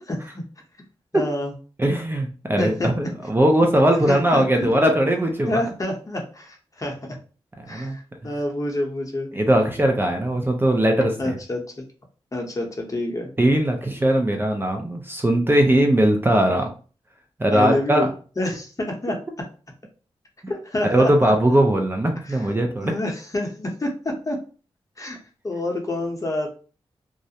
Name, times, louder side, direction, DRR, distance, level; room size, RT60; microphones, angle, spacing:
voice 1, 0.1-0.4 1.1-1.5 2.6-2.9 4.1-4.9 5.5-7.0 7.7-9.3 11.2-11.6 12.3-13.3 17.5-18.1 18.4-19.2 20.5-21.3 22.2-22.5 22.8-24.4 25.0-25.2 25.4-26.5, left 1 dB, 35° left, 1 dB, 0.8 m, -27 dB
voice 2, 1.8-5.6 7.7-8.0 9.3-11.4 13.4-16.7 17.4-18.1 20.9-22.9, right 1 dB, 20° right, 3 dB, 0.5 m, -20 dB
2.4 x 2.1 x 2.7 m, 0.38 s
cardioid pair, 65°, 10 cm